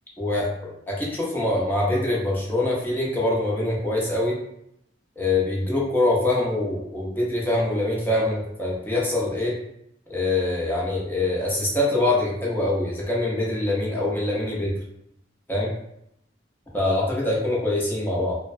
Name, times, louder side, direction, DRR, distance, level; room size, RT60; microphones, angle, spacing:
voice 1, 0.2-4.4 5.2-9.6 10.1-14.7 15.5-15.7 16.7-18.3, left 2 dB, 10° left, -5 dB, 0.7 m, -24 dB
2.8 x 2.1 x 2.6 m, 0.78 s
head